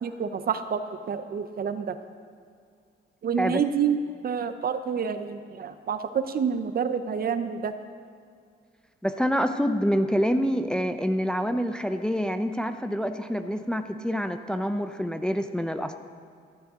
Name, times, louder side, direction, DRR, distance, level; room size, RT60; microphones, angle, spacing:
voice 1, 0.0-2.0 3.2-7.7, right 7 dB, 50° right, 10 dB, 0.8 m, -28 dB
voice 2, 9.0-15.9, equal, 5° left, 8 dB, 0.6 m, -26 dB
13.5 x 13.5 x 3.8 m, 2.2 s
cardioid pair, 90°, 20 cm